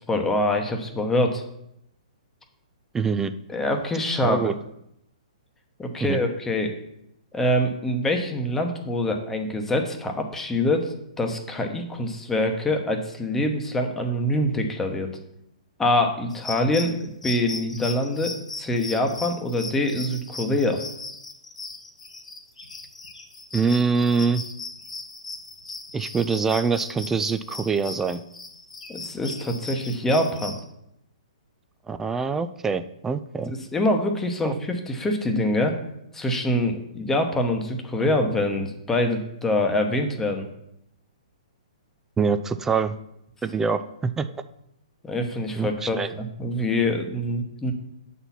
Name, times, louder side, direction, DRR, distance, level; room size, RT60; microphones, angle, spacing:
voice 1, 0.0-1.4 3.5-4.5 5.8-6.7 7.3-15.1 15.8-20.8 28.9-30.6 33.4-35.8 36.1-40.5 45.0-47.7, left 1 dB, 10° left, 4 dB, 1.0 m, -25 dB
voice 2, 2.9-3.3 4.2-4.5 6.0-6.2 23.5-24.4 25.9-28.2 31.9-33.5 34.4-34.6 42.2-43.0 43.4-44.3 45.6-46.1, right 5 dB, 10° right, 10 dB, 0.3 m, -24 dB
sound 1, 16.3-30.6, left 3 dB, 80° left, 1.2 m, -38 dB
7.8 x 4.2 x 5.8 m, 0.79 s
hypercardioid pair, 125°, 4 cm